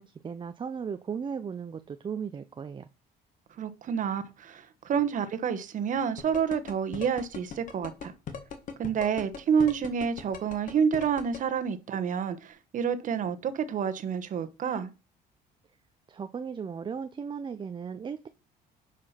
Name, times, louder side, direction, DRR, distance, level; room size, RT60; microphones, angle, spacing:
voice 1, 0.0-2.9 16.1-18.3, right 6 dB, 30° right, 0.6 m, -36 dB
voice 2, 3.6-8.1 8.8-14.9, right 7 dB, 50° right, 1.2 m, -29 dB
sound 1, 6.2-11.4, left 7 dB, 50° left, 1.7 m, -38 dB
10.0 x 5.0 x 5.7 m
cardioid pair, 110°, 17 cm